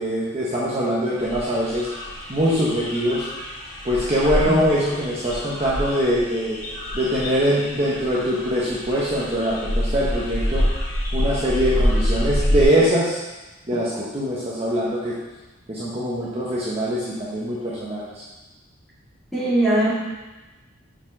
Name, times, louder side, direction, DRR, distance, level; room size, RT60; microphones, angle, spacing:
voice 1, 0.0-1.9 2.3-3.2 3.8-6.6 6.9-10.6 11.1-13.2 13.7-15.2 15.7-18.2, equal, 30° right, -7 dB, 1.0 m, -23 dB
sound 1, 1.2-12.6, equal, 40° left, 1.8 m, -27 dB
voice 2, 19.3-19.9, right 1 dB, ahead, -10 dB, 2.5 m, -20 dB
6.0 x 5.0 x 6.0 m, 1.1 s
head